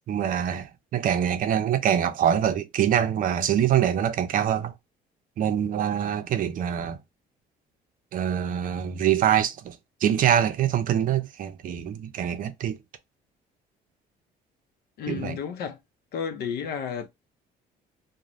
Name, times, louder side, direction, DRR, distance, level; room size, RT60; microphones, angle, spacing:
voice 1, 0.0-4.7 5.4-7.0 8.1-12.8 15.1-15.4, right 9 dB, 55° right, 0.5 m, -24 dB
voice 2, 15.0-15.8 16.1-17.1, left 7 dB, 70° left, 0.6 m, -32 dB
3.0 x 2.1 x 2.5 m
cardioid pair, 110°, 17 cm